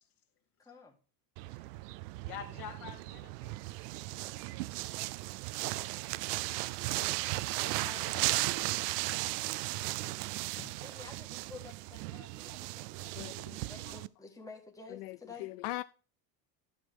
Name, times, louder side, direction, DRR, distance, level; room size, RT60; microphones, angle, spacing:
voice 1, 0.6-1.0 6.8-7.3 10.8-15.5, left 4 dB, 5° left, 1.6 m, -52 dB
sound 1, 1.4-14.1, right 20 dB, 75° right, 0.6 m, -36 dB
voice 2, 2.2-3.5 7.0-7.2 7.6-8.3 8.7-8.9 9.2-10.1 10.6-10.7, left 9 dB, 45° left, 2.2 m, -48 dB
voice 3, 13.2-13.6 14.9-15.8, left 18 dB, 75° left, 0.5 m, -40 dB
11.5 x 6.3 x 3.6 m
supercardioid pair, 145°, 48 cm